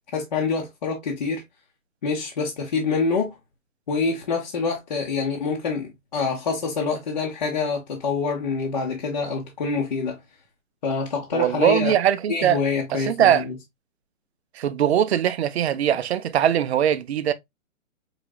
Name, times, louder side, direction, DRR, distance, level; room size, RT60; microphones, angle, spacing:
voice 1, 0.1-1.4 2.0-3.3 3.9-10.2 10.8-11.9 12.3-13.5, left 4 dB, 30° left, 0.7 m, -26 dB
voice 2, 11.3-12.6 12.9-13.4 14.6-17.3, right 10 dB, 55° right, 0.5 m, -21 dB
4.8 x 3.1 x 2.2 m
hypercardioid pair, 160°, 41 cm